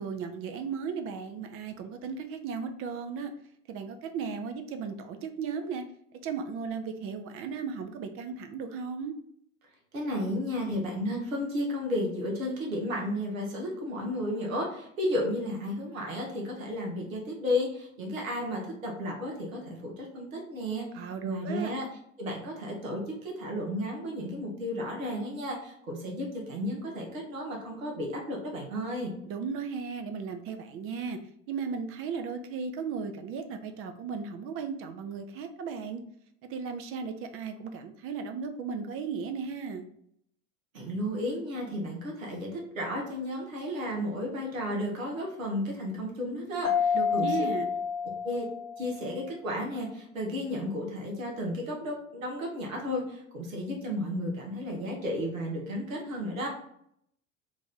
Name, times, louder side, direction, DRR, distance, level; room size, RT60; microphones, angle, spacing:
voice 1, 0.0-3.3 3.7-5.8 6.2-9.1 20.9-21.7 29.3-31.2 31.5-36.0 36.5-39.9 46.9-47.7, right 6 dB, 35° right, 6 dB, 0.4 m, -36 dB
voice 2, 9.9-20.8 21.2-21.9 22.2-29.1 40.7-47.4 48.2-48.5 48.8-56.5, left 1 dB, 80° right, 0 dB, 1.0 m, -33 dB
Mallet percussion, 46.6-49.2, left 7 dB, 35° left, 0.6 m, -29 dB
3.1 x 2.5 x 3.6 m, 0.71 s
figure-of-eight pair, 75°, 40 cm